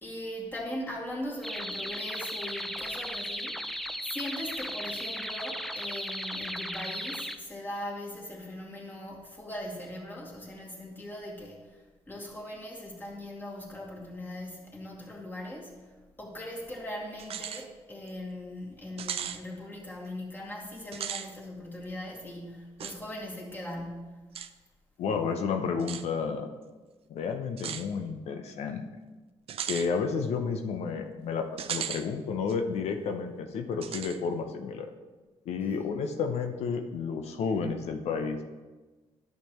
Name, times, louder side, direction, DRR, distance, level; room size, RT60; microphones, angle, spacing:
voice 1, 0.0-15.8 16.2-24.3 35.6-35.8, left 1 dB, 20° left, -4 dB, 2.4 m, -40 dB
sound 1, 1.4-7.4, equal, ahead, 0.5 m, -36 dB
sound 2, 17.2-17.7 18.1-18.2 19.0-19.4 20.8-21.3 22.8-23.0 24.4-24.5 25.8-26.1 27.6-27.9 29.5-29.9 31.6-32.1 32.5-32.6 33.8-34.2, right 9 dB, 65° right, 0.5 m, -36 dB
voice 2, 25.0-26.5 27.1-28.8 29.7-34.9 35.5-38.4, left 5 dB, 75° left, 6 dB, 0.7 m, -31 dB
11.0 x 6.7 x 3.1 m, 1.3 s
cardioid pair, 85°, 11 cm